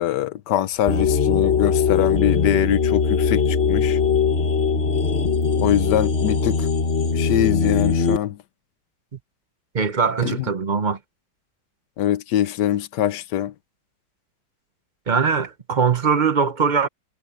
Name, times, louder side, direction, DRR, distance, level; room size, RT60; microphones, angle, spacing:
voice 1, 0.0-4.0 5.6-6.7 7.1-8.4 10.2-10.5 12.0-13.5, left 12 dB, 75° left, 1.3 m, -23 dB
sound 1, 0.9-8.2, left 5 dB, 40° left, 1.4 m, -20 dB
voice 2, 9.7-11.0 15.1-16.9, right 5 dB, 35° right, 0.9 m, -21 dB
omnidirectional pair, 1.9 m